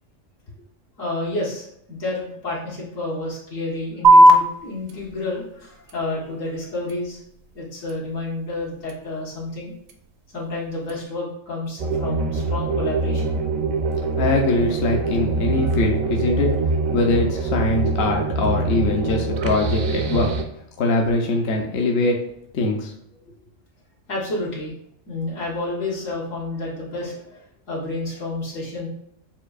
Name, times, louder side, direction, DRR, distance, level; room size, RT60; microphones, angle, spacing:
voice 1, 1.0-7.2 7.5-9.7 10.3-13.4 15.6-15.8 24.1-24.7 25.1-28.9, left 2 dB, 75° left, -5 dB, 1.9 m, -30 dB
sound 1, 4.0-11.0, right 1 dB, 90° right, 1.0 m, -21 dB
sound 2, 11.8-20.4, right 3 dB, 70° right, 0.4 m, -24 dB
voice 2, 14.1-16.5 16.9-20.3 20.8-22.2 22.5-22.9, left 2 dB, 60° left, 1 dB, 0.8 m, -22 dB
7.2 x 2.6 x 2.4 m, 0.71 s
omnidirectional pair, 1.4 m